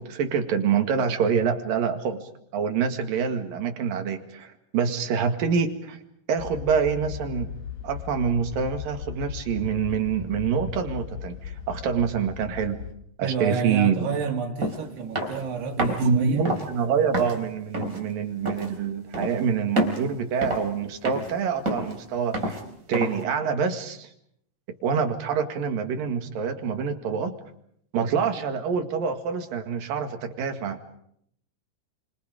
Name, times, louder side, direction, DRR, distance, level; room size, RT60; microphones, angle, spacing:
voice 1, 0.0-6.0 6.3-7.5 7.8-12.9 13.2-14.1 15.8-22.6 22.9-24.1 24.8-27.4 27.9-30.8, right 6 dB, 60° right, 3.6 m, -26 dB
sound 1, 6.4-12.9, left 8 dB, 70° left, 3.6 m, -37 dB
voice 2, 13.2-16.4, right 5 dB, 80° right, 4.9 m, -30 dB
sound 2, 14.6-14.8 15.2-15.4 15.8-16.1 16.5-16.7 17.1-17.4 17.7-18.0 18.5-18.7 19.1-19.4 19.8-20.0 20.4-20.8 21.0-21.3 21.7-22.0 22.3-22.6 22.9-23.2, equal, 20° right, 4.0 m, -28 dB
30.0 x 25.5 x 5.2 m
omnidirectional pair, 4.7 m